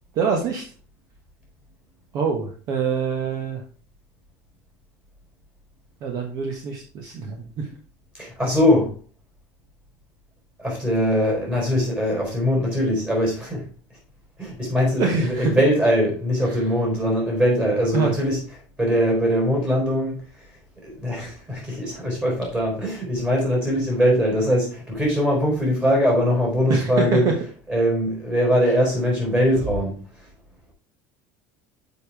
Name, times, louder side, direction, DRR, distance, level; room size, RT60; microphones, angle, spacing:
voice 1, 0.1-0.6 2.1-3.6 6.0-7.7 15.0-15.5 16.4-16.6 17.9-18.1 26.7-27.3, right 5 dB, 50° right, 3 dB, 1.4 m, -25 dB
voice 2, 8.1-8.9 10.6-13.6 14.4-18.4 18.8-20.4 20.8-27.3 27.7-30.0, equal, 15° right, -2 dB, 4.5 m, -21 dB
7.0 x 5.3 x 4.8 m, 0.37 s
cardioid pair, 155°, 8 cm